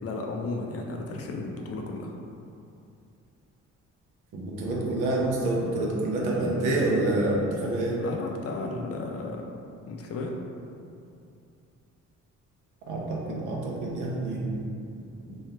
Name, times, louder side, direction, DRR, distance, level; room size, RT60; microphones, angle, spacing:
voice 1, 0.0-2.1 8.0-9.5 9.9-10.3, left 3 dB, 50° left, 1 dB, 0.5 m, -34 dB
voice 2, 4.3-8.0 12.9-14.6 14.9-15.4, right 2 dB, 90° right, -3 dB, 0.8 m, -28 dB
3.2 x 2.3 x 4.3 m, 2.6 s
cardioid pair, 90°, 30 cm